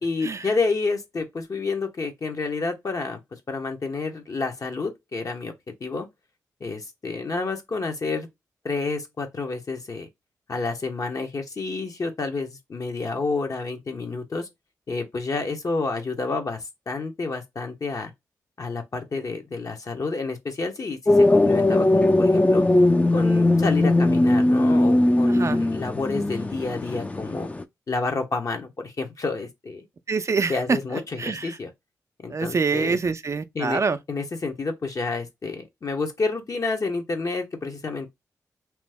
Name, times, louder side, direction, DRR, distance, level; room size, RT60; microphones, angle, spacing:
voice 1, 0.0-3.2 3.5-5.5 5.8-6.1 6.6-8.3 8.6-10.1 10.5-14.5 14.9-18.1 18.6-22.6 23.1-27.5 27.9-29.8 30.5-31.7 32.2-33.0 33.5-33.8 34.1-38.1, left 3 dB, 50° left, 0.9 m, -29 dB
sound 1, 21.1-27.6, left 2 dB, 20° left, 0.4 m, -19 dB
voice 2, 25.3-25.6 30.1-30.8 31.2-31.6 32.3-34.0, right 4 dB, 45° right, 0.4 m, -25 dB
2.9 x 2.0 x 3.4 m
supercardioid pair, 45°, 7 cm